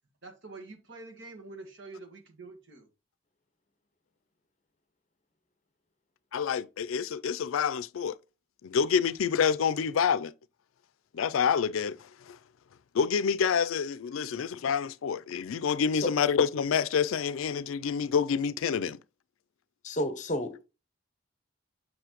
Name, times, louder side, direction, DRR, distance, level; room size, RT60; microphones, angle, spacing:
voice 1, 0.2-2.9, right 3 dB, 70° right, 1.6 m, -46 dB
voice 2, 6.3-8.2 8.6-10.3 11.1-12.4 12.9-19.0, left 6 dB, 90° left, 0.4 m, -27 dB
voice 3, 19.8-20.7, left 1 dB, 35° left, 0.8 m, -31 dB
6.9 x 6.2 x 2.9 m
head